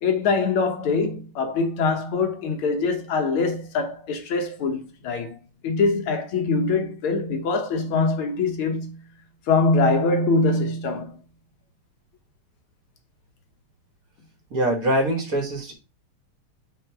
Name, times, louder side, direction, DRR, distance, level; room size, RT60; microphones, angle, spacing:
voice 1, 0.0-9.0 9.5-11.2, left 3 dB, 90° left, 1.9 m, -23 dB
voice 2, 14.5-15.7, right 1 dB, 45° right, 1.7 m, -23 dB
5.1 x 4.0 x 4.6 m
omnidirectional pair, 2.3 m